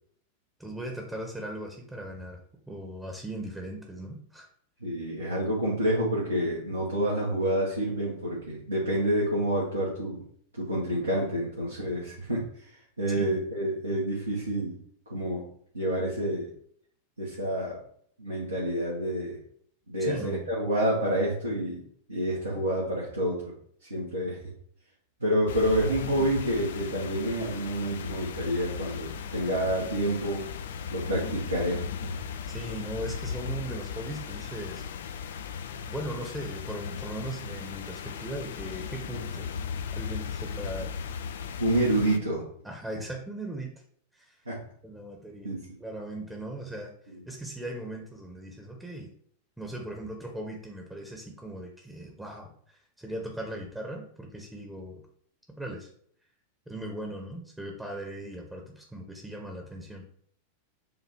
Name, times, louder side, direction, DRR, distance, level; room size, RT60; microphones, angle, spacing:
voice 1, 0.6-2.4 2.7-4.5 13.1-13.4 20.0-20.5 26.2-26.3 32.5-34.8 35.9-39.5 40.0-40.9 42.6-43.7 44.1-44.5 44.8-45.5 45.8-46.9 47.3-49.1 49.6-55.0 55.6-55.9 56.7-60.0, right 1 dB, 5° right, 1 dB, 1.0 m, -38 dB
voice 2, 4.8-10.2 10.5-14.8 15.1-15.4 15.7-16.5 17.2-17.8 18.2-19.4 19.9-21.8 22.1-23.5 23.8-24.4 25.2-30.5 30.9-31.8 32.1-32.2 41.6-42.4 44.4-44.6 45.4-45.7, right 1 dB, 80° right, -6 dB, 1.5 m, -28 dB
sound 1, 25.5-42.2, left 6 dB, 60° left, 0.5 m, -37 dB
7.5 x 2.7 x 4.5 m, 0.64 s
figure-of-eight pair, 90°, 0 cm